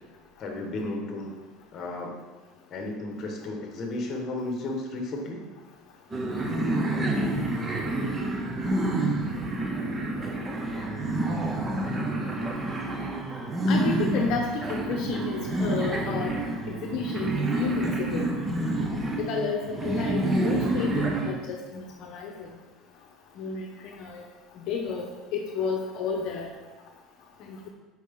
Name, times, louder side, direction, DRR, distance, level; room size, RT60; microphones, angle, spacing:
voice 1, 0.4-1.3 1.7-2.2 2.7-5.4 7.2-7.3, left 2 dB, 35° left, 2 dB, 1.4 m, -33 dB
sound 1, 6.1-21.3, right 2 dB, 20° right, 0.8 m, -28 dB
voice 2, 13.7-16.3 16.7-18.4 19.2-22.5 23.4-24.2 24.5-25.0 25.3-26.5 27.4-27.7, left 5 dB, 55° left, 1 dB, 0.8 m, -31 dB
7.3 x 4.8 x 3.8 m, 1.2 s
cardioid pair, 140°, 0 cm